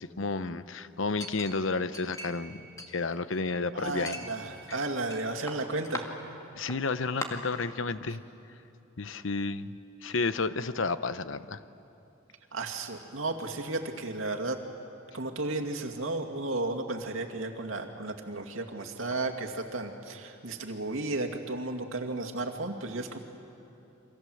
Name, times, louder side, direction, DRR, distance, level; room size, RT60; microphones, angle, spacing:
voice 1, 0.0-2.6 2.9-4.2 6.6-8.2 9.0-9.7 10.0-11.6, left 3 dB, 75° left, 13 dB, 0.8 m, -31 dB
Chink clink, 1.2-2.5 2.8-3.6 4.1-5.2 5.5-6.0 6.7-6.8 7.2-7.3, left 1 dB, 15° left, 2.0 m, -40 dB
voice 2, 3.7-6.1 12.5-14.6 15.1-23.2, right 2 dB, 85° right, 2 dB, 2.3 m, -33 dB
29.0 x 24.5 x 7.9 m, 2.8 s
head